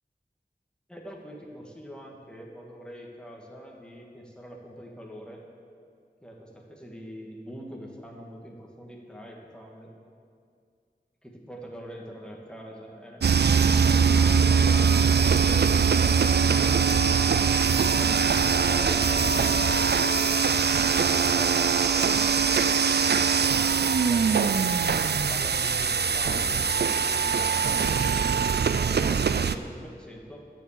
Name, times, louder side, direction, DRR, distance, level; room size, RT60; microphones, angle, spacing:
voice 1, 0.9-5.4 6.2-9.9 11.2-13.5 13.9-14.9 18.6-23.2 24.0-28.4 28.7-30.5, equal, 5° left, -1 dB, 1.8 m, -44 dB
sound 1, 13.2-29.6, right 6 dB, 70° right, 0.4 m, -22 dB
11.5 x 7.3 x 7.3 m, 2.3 s
wide cardioid pair, 55°, 17 cm